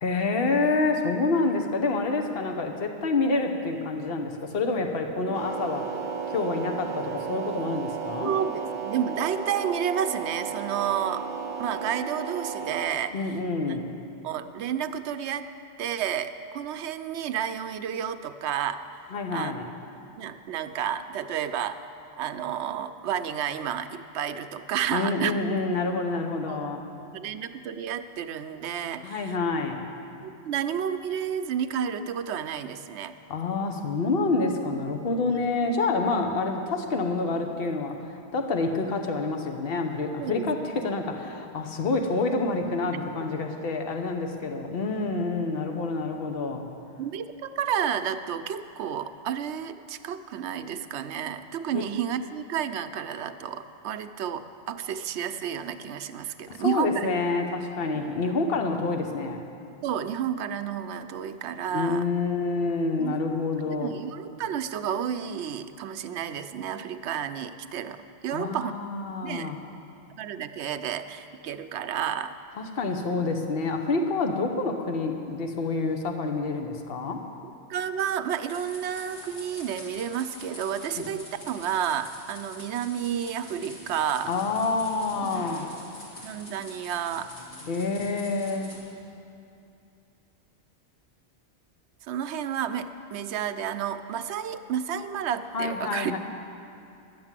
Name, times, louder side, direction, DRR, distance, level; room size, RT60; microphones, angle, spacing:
voice 1, 0.0-5.8 6.3-8.3 13.1-13.9 19.1-19.7 24.9-26.8 29.0-29.8 33.3-46.7 51.7-51.8 56.5-59.4 61.7-63.9 68.3-69.6 72.6-77.2 81.0-81.1 84.2-85.7 87.7-88.7 95.5-96.2, left 3 dB, 60° left, 4 dB, 1.1 m, -28 dB
sound 1, 5.3-12.9, right 6 dB, 40° right, 0.4 m, -34 dB
voice 2, 8.2-11.3 11.6-13.4 14.2-15.5 15.8-18.8 19.3-19.5 20.2-21.8 22.2-25.3 26.5-26.7 27.1-29.4 30.2-33.1 35.3-35.4 40.2-40.5 47.0-57.1 57.9-58.0 59.8-62.0 63.0-68.7 69.2-69.5 70.2-72.3 77.7-84.3 85.2-85.3 86.2-87.3 92.1-96.1, right 9 dB, 80° right, 10 dB, 0.9 m, -31 dB
sound 2, 78.5-88.8, left 1 dB, 85° left, 2.8 m, -45 dB
11.0 x 9.4 x 7.4 m, 2.6 s
omnidirectional pair, 1.2 m